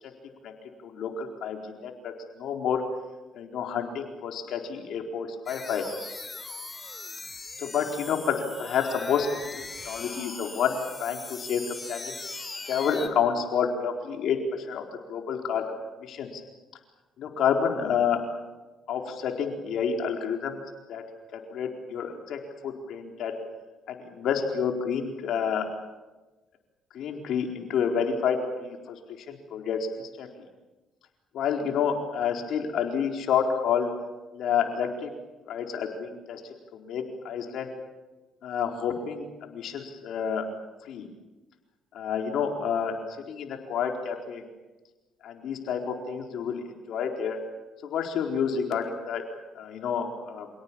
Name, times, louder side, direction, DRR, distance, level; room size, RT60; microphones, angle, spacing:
voice 1, 0.8-2.8 3.3-5.9 7.6-9.3 9.6-12.1 12.7-15.6 16.1-16.4 17.2-18.2 18.9-20.6 20.9-21.0 21.3-23.4 23.9-25.7 26.9-30.5 31.3-33.9 34.3-35.1 35.5-36.4 36.7-37.7 38.4-40.5 40.8-41.1 41.9-42.9 43.3-44.4 45.2-47.4 47.8-49.2 49.5-50.5, left 7 dB, 70° left, 3 dB, 4.4 m, -29 dB
sound 1, 5.5-13.1, left 3 dB, 25° left, 3.3 m, -40 dB
28.0 x 18.0 x 8.9 m, 1.2 s
cardioid pair, 90°, 0 cm